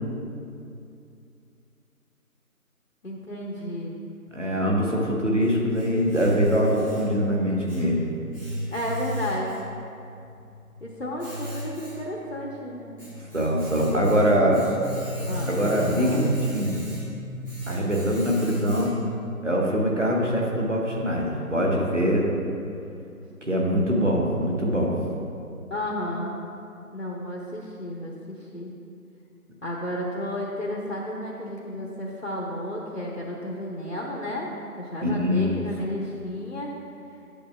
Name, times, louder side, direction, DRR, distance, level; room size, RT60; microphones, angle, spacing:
voice 1, 3.0-4.0 8.7-9.7 10.8-13.0 13.9-14.6 15.2-16.3 25.7-26.3 26.9-28.7 29.6-34.5 34.8-36.7, left 1 dB, 60° left, -3 dB, 0.9 m, -33 dB
voice 2, 4.3-8.0 13.3-14.7 15.4-16.8 17.7-18.9 19.4-22.3 23.5-24.9 35.0-35.6, equal, 55° right, -2 dB, 1.2 m, -23 dB
Domestic sounds home sounds, 5.4-19.2, equal, 35° right, 1.5 m, -37 dB
sound 1, 13.1-18.6, left 1 dB, 80° left, 1.1 m, -38 dB
10.0 x 6.7 x 2.3 m, 2.5 s
figure-of-eight pair, 175°, 45 cm